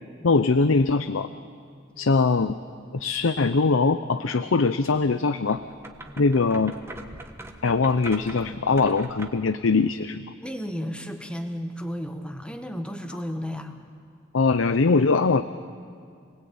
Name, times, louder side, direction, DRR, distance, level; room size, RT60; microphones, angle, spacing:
voice 1, 0.2-1.3 2.0-2.6 2.9-5.6 6.2-6.7 7.6-10.2 14.3-15.4, left 4 dB, 85° left, 12 dB, 0.7 m, -22 dB
sound 1, 5.4-9.5, right 2 dB, 15° right, 1.4 m, -42 dB
voice 2, 10.4-13.8, equal, 5° left, 5 dB, 1.6 m, -33 dB
27.0 x 20.5 x 8.7 m, 2.2 s
head